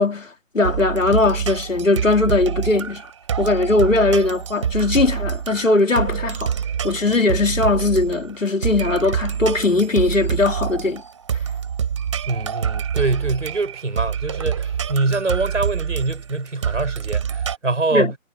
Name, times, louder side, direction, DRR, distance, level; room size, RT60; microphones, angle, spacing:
voice 1, 0.0-3.0 3.4-6.6 6.8-11.0 17.9-18.1, left 3 dB, 70° left, 3.1 m, -19 dB
sound 1, 0.6-17.6, right 7 dB, 20° right, 3.3 m, -26 dB
voice 2, 12.3-18.2, right 3 dB, 60° right, 6.4 m, -24 dB
figure-of-eight pair, 160°, 41 cm